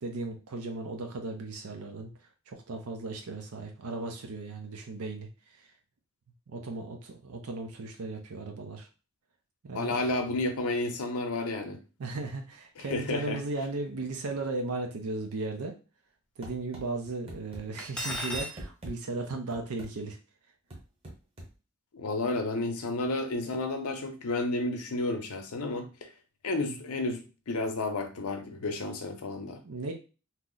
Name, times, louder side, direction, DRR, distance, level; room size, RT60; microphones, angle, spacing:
voice 1, 0.0-2.1 2.5-5.3 5.6-5.7 6.5-8.9 9.6-10.0 12.0-15.7 16.4-20.2 29.6-29.9, right 3 dB, 80° right, 3 dB, 0.6 m, -36 dB
voice 2, 9.7-11.8 12.8-13.4 21.9-26.1 26.4-29.6, left 2 dB, 80° left, 5 dB, 0.6 m, -31 dB
sound 1, 16.4-16.9 17.3-17.6 18.1-19.0 19.5-19.9 20.7-21.5, right 1 dB, 25° right, 0.7 m, -43 dB
Cutlery silverware, 17.8-18.6, equal, 5° left, 0.4 m, -34 dB
2.9 x 2.0 x 3.7 m, 0.33 s
head